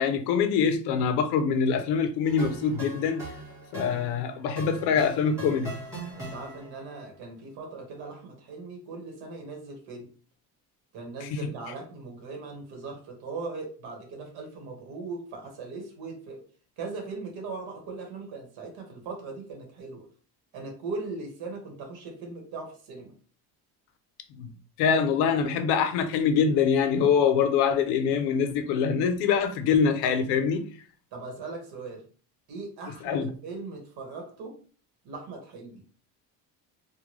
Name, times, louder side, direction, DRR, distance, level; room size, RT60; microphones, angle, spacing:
voice 1, 0.0-3.3 3.7-5.7 11.2-11.4 24.4-24.5 24.8-30.7 33.0-33.3, left 6 dB, 75° left, 0.6 m, -24 dB
sound 1, 2.2-6.9, right 1 dB, 10° right, 1.6 m, -40 dB
voice 2, 6.1-10.1 10.9-16.4 16.8-20.0 20.5-23.1 31.1-32.0 32.5-34.6 35.0-35.8, right 3 dB, 70° right, 1.4 m, -39 dB
3.6 x 2.2 x 3.0 m
cardioid pair, 165°, 39 cm